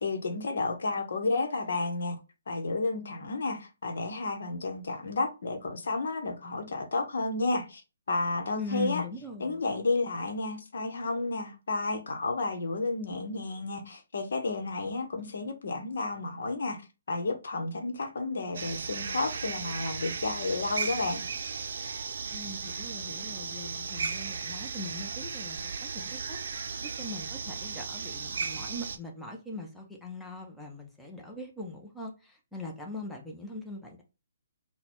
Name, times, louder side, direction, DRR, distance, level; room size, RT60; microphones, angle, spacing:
voice 1, 0.0-2.2 2.5-7.8 8.1-9.0 9.4-16.8 17.1-21.2, left 3 dB, 65° left, 0.9 m, -31 dB
voice 2, 8.6-9.6 22.3-26.4 26.8-34.0, left 2 dB, 5° left, 0.8 m, -41 dB
sound 1, 18.5-29.0, right 5 dB, 65° right, 0.5 m, -36 dB
4.0 x 2.2 x 4.4 m
figure-of-eight pair, 140°, 0 cm